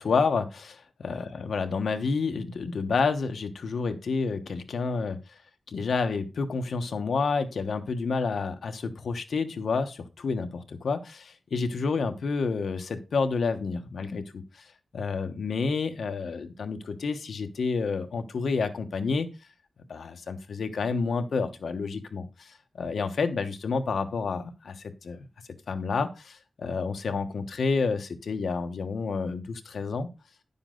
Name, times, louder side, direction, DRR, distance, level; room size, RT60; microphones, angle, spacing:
voice 1, 0.0-5.2 5.7-14.6 14.9-19.3 19.9-25.2 25.7-30.1, left 4 dB, 85° left, 7 dB, 1.1 m, -29 dB
10.5 x 7.1 x 3.9 m, 0.28 s
wide cardioid pair, 110°, 0 cm